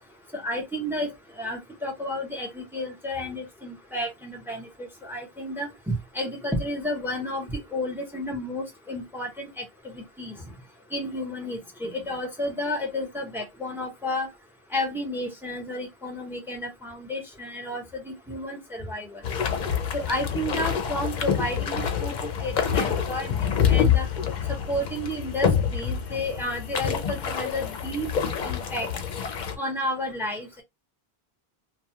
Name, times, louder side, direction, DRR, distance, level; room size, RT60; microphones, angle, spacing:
voice 1, 0.3-1.1 1.4-9.6 10.0-10.3 10.9-14.3 14.7-19.2 19.9-24.1 24.5-28.1 28.4-28.9 29.6-30.6, left 1 dB, ahead, 0.7 m, -31 dB
sound 1, 19.2-29.6, left 8 dB, 55° left, 0.6 m, -27 dB
2.5 x 2.3 x 2.8 m
omnidirectional pair, 1.1 m